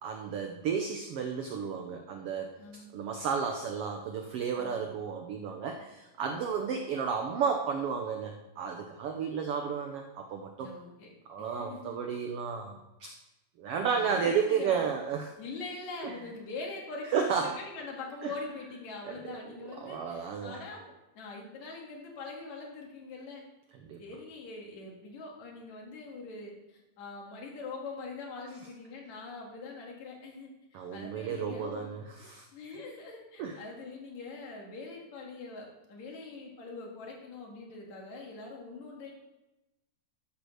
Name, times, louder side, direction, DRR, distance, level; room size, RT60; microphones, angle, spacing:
voice 1, 0.0-2.6 2.9-10.7 11.3-13.1 13.6-15.3 16.0-16.1 17.1-17.6 18.2-18.3 19.0-19.4 19.8-20.6 23.8-24.0 30.7-32.4 33.4-33.6, right 6 dB, 80° right, 4 dB, 1.3 m, -32 dB
voice 2, 2.6-2.9 4.5-4.9 10.6-11.1 11.4-12.0 13.9-14.8 15.4-20.9 21.1-23.4 24.0-31.9 32.5-39.1, left 3 dB, 60° left, 0 dB, 3.2 m, -43 dB
12.0 x 4.9 x 6.4 m, 1.0 s
omnidirectional pair, 3.7 m